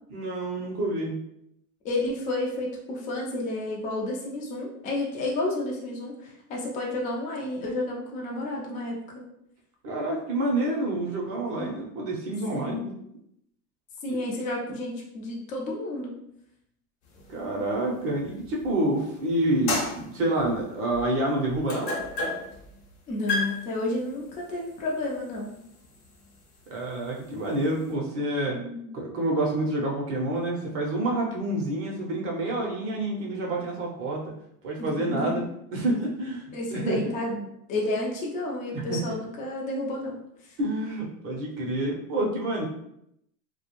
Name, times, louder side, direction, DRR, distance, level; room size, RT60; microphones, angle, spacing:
voice 1, 0.1-1.2 9.8-12.8 14.1-14.2 17.3-21.9 26.7-28.6 28.9-34.3 34.6-35.4 35.7-36.4 36.7-37.0 38.7-39.0 40.6-42.7, right 1 dB, 30° right, -1 dB, 0.6 m, -28 dB
voice 2, 1.8-9.2 11.5-11.7 12.5-12.9 14.0-16.2 23.1-25.6 28.5-28.9 34.8-35.4 36.5-40.2 40.4-40.6, left 2 dB, 20° left, -2 dB, 0.4 m, -31 dB
sound 1, 17.1-19.0 19.4-27.9, left 2 dB, 50° left, 0.9 m, -35 dB
2.3 x 2.1 x 2.9 m, 0.76 s
hypercardioid pair, 110°, 45 cm